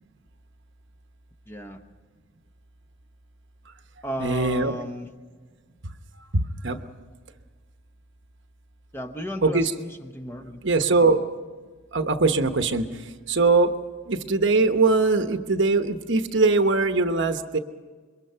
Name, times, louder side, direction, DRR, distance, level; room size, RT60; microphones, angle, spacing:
voice 1, 1.5-1.8 4.0-5.1 8.9-10.6, equal, 10° left, 6 dB, 1.0 m, -34 dB
voice 2, 4.2-4.7 6.3-6.8 9.4-9.7 10.6-11.2 11.9-13.7 14.1-17.6, right 3 dB, 55° right, 8 dB, 1.0 m, -21 dB
26.5 x 22.5 x 5.7 m, 1.5 s
head